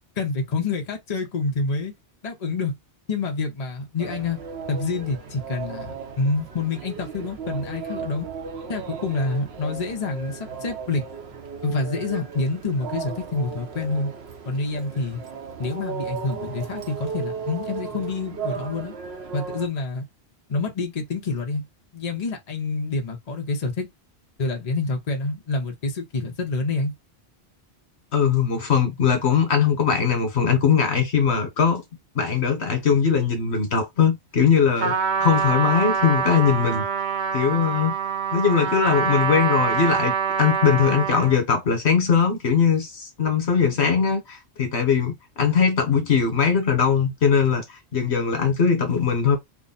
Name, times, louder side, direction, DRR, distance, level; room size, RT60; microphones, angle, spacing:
voice 1, 0.2-1.9 2.2-2.7 3.1-4.4 4.7-8.3 8.7-11.0 11.6-14.1 14.5-15.2 15.6-18.9 19.3-20.1 20.5-21.6 21.9-23.9 24.4-26.9, left 3 dB, 40° left, 0.8 m, -27 dB
sound 1, 4.0-19.7, right 6 dB, 75° right, 1.0 m, -35 dB
voice 2, 28.1-31.8 32.1-36.8 37.3-37.9 38.3-49.4, left 6 dB, 80° left, 1.5 m, -21 dB
Trumpet, 34.8-41.4, right 6 dB, 50° right, 0.7 m, -25 dB
3.4 x 2.1 x 3.9 m
omnidirectional pair, 1.1 m